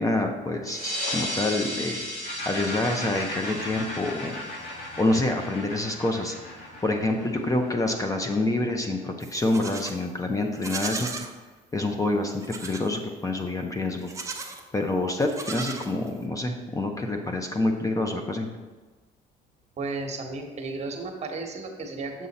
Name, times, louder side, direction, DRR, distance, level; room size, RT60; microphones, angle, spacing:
voice 1, 0.0-2.0 2.5-4.4 5.0-11.1 11.7-14.1 14.7-18.5, left 2 dB, 20° left, 4 dB, 0.7 m, -27 dB
sound 1, 0.6-5.7, left 1 dB, 60° left, 2.6 m, -35 dB
sound 2, 2.2-9.8, left 1 dB, 85° left, 1.8 m, -38 dB
Livestock farm animals working animals, 9.2-10.0 10.5-11.3 12.4-12.9 14.0-14.6 15.2-16.3, right 4 dB, 20° right, 0.8 m, -36 dB
voice 2, 19.8-22.3, right 3 dB, 40° right, 3 dB, 1.3 m, -34 dB
7.5 x 5.6 x 4.1 m, 1.3 s
cardioid pair, 110°, 17 cm